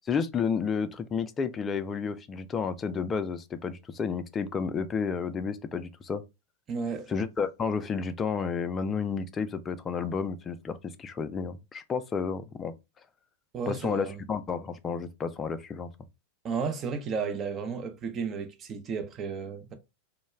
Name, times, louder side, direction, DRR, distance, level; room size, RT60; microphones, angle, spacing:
voice 1, 0.1-6.2 7.1-12.7 13.7-15.9, left 5 dB, 25° left, 0.3 m, -31 dB
voice 2, 6.7-7.1 13.5-14.2 16.4-19.7, right 5 dB, 35° right, 0.6 m, -33 dB
2.2 x 2.0 x 3.0 m
hypercardioid pair, 90°, 0 cm